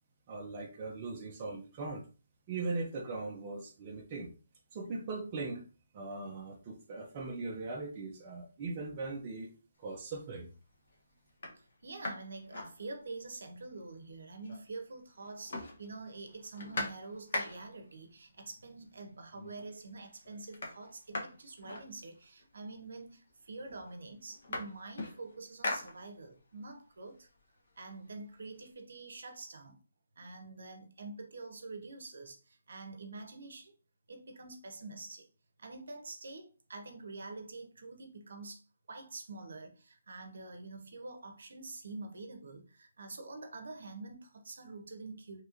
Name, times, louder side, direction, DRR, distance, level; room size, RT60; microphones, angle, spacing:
voice 1, 0.3-2.1 2.5-4.3 4.7-5.7 5.9-10.5, right 3 dB, 20° right, 0.3 m, -40 dB
sound 1, 9.9-10.3 10.9-11.0 11.3-13.4 13.7-13.8 14.0-14.9 15.1-17.9 18.8-18.9 19.3-19.8 20.1-22.5 23.3-23.4 23.7-26.5 26.9-28.6, left 2 dB, 45° left, 0.8 m, -42 dB
voice 2, 11.6-27.3 27.8-29.8 30.2-33.7 34.1-35.3 35.6-45.4, right 3 dB, 55° right, 0.6 m, -46 dB
3.1 x 2.8 x 2.4 m
hypercardioid pair, 180°, 0 cm